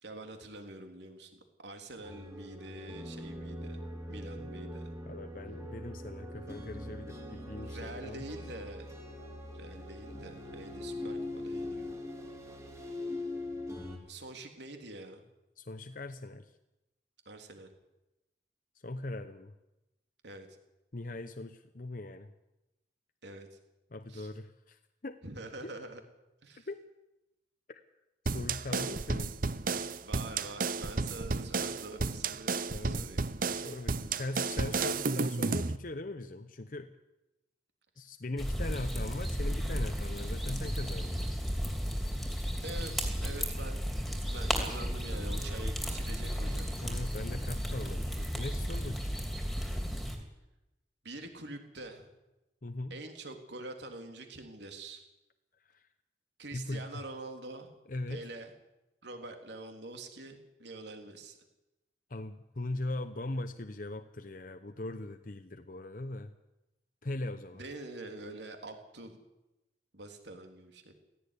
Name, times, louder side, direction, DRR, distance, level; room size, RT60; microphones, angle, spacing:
voice 1, 0.0-3.8 4.1-4.9 7.6-8.9 9.5-12.0 14.1-15.2 17.2-17.7 20.2-20.5 23.2-23.6 24.1-24.3 25.2-26.0 26.4-26.7 28.7-28.9 30.0-32.6 32.9-33.2 42.6-43.8 44.3-46.7 51.0-52.1 52.9-55.1 56.4-57.8 58.1-58.5 59.0-61.4 67.5-69.2 69.9-70.9, right 2 dB, 70° right, 5 dB, 3.3 m, -45 dB
sound 1, 2.0-14.0, left 1 dB, 15° right, 3.1 m, -41 dB
voice 2, 5.0-8.3 15.6-16.5 18.8-19.5 20.9-22.3 23.9-25.2 25.6-25.7 26.7-26.8 27.7-27.8 28.2-29.3 32.7-33.1 33.5-36.9 38.0-41.2 46.8-49.1 52.6-52.9 55.6-55.8 56.5-57.0 57.9-58.2 62.1-66.3 67.0-67.6, left 2 dB, 45° left, 8 dB, 0.8 m, -40 dB
sound 2, 28.3-35.8, right 4 dB, 50° right, 0.8 m, -32 dB
sound 3, 38.4-50.2, equal, ahead, 2.9 m, -34 dB
17.5 x 15.5 x 10.0 m, 0.96 s
head